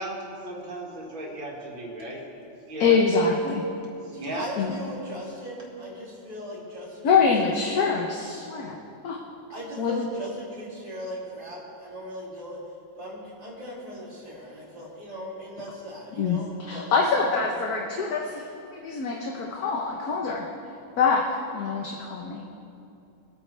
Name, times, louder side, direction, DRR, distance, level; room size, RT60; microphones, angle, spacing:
voice 1, 0.0-2.2 2.7-3.0 4.2-4.5, right 1 dB, 75° right, -3 dB, 3.0 m, -35 dB
voice 2, 2.8-3.6 4.6-4.8 7.0-8.8 9.0-9.2 9.8-10.1 16.2-20.5 21.0-21.2 21.5-22.5, left 5 dB, 55° left, 0 dB, 1.3 m, -25 dB
voice 3, 4.1-7.1 7.4-7.8 9.5-12.6 13.0-17.2, equal, 20° right, -7 dB, 3.0 m, -38 dB
23.5 x 9.2 x 3.4 m, 2.7 s
omnidirectional pair, 2.2 m